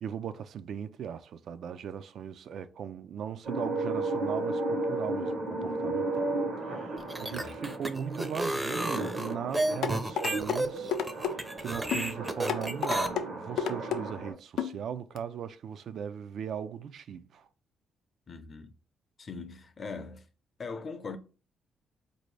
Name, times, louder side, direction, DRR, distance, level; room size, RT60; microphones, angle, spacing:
voice 1, 0.0-6.4 6.6-17.5, right 8 dB, 65° right, 0.4 m, -39 dB
sound 1, 3.4-14.3, right 2 dB, 85° right, 1.2 m, -34 dB
sound 2, 7.0-13.1, right 1 dB, 10° right, 0.5 m, -32 dB
voice 2, 7.3-7.6 18.3-18.8 19.2-20.3 20.6-21.2, left 4 dB, 40° left, 0.6 m, -41 dB
sound 3, 9.8-10.6 10.9-11.3 11.9-12.1 12.5-13.3 13.6-14.0 14.6-14.7 15.2-15.3, left 7 dB, 85° left, 0.4 m, -30 dB
4.3 x 2.7 x 3.2 m
cardioid pair, 90°, 0 cm